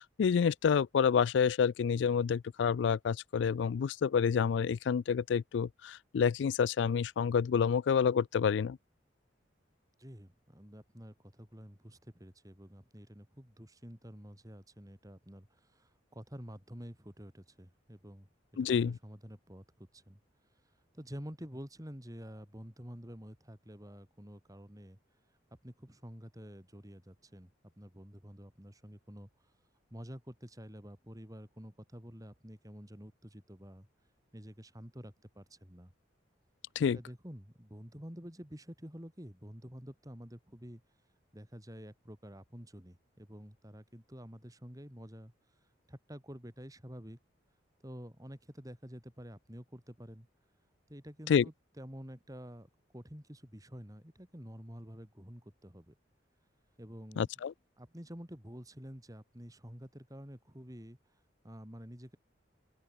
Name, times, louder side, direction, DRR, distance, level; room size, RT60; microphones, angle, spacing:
voice 1, 0.0-8.8 18.6-19.0 36.8-37.0 51.3-51.5 57.2-57.5, left 7 dB, 65° left, 0.3 m, -28 dB
voice 2, 10.0-18.3 18.8-20.2 20.9-25.0 25.6-27.5 27.8-29.3 29.9-33.9 34.3-35.9 36.9-40.8 41.3-45.3 45.9-47.2 47.8-50.3 50.9-55.9 56.8-57.3 57.8-61.0 61.4-62.2, equal, 20° right, 3.7 m, -49 dB
open air
head